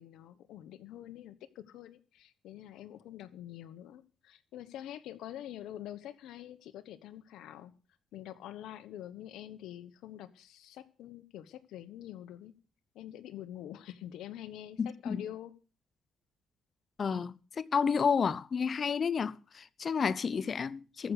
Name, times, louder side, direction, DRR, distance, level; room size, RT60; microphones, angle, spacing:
voice 1, 0.0-7.7 8.1-12.5 12.9-15.5, left 12 dB, 85° left, 1.2 m, -46 dB
voice 2, 14.8-15.2 17.0-21.1, left 6 dB, 45° left, 0.7 m, -31 dB
14.5 x 6.5 x 8.3 m
cardioid pair, 90°, 0 cm